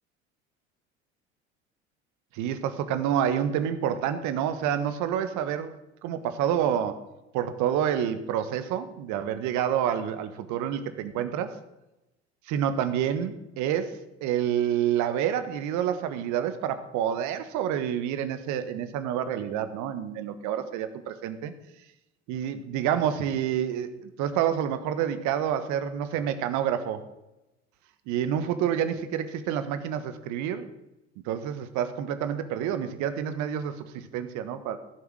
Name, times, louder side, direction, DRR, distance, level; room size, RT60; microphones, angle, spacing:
voice 1, 2.3-7.0 7.3-11.5 12.5-21.5 22.3-27.0 28.1-30.7 31.2-34.8, right 9 dB, 60° right, 10 dB, 1.4 m, -28 dB
16.0 x 7.4 x 6.3 m, 0.96 s
hypercardioid pair, 70°, 34 cm